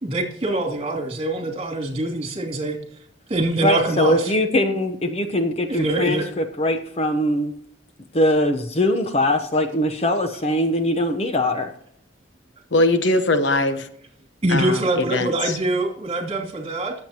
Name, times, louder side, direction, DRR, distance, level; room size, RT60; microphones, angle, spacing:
voice 1, 0.0-2.8 3.3-4.3 5.7-6.3 14.4-16.9, right 2 dB, 35° right, 1 dB, 2.8 m, -24 dB
voice 2, 3.6-7.6 8.1-11.7, left 1 dB, 35° left, 7 dB, 0.9 m, -21 dB
voice 3, 12.7-13.9 14.5-15.6, left 2 dB, 70° left, 9 dB, 1.0 m, -21 dB
19.0 x 7.9 x 2.9 m, 0.67 s
head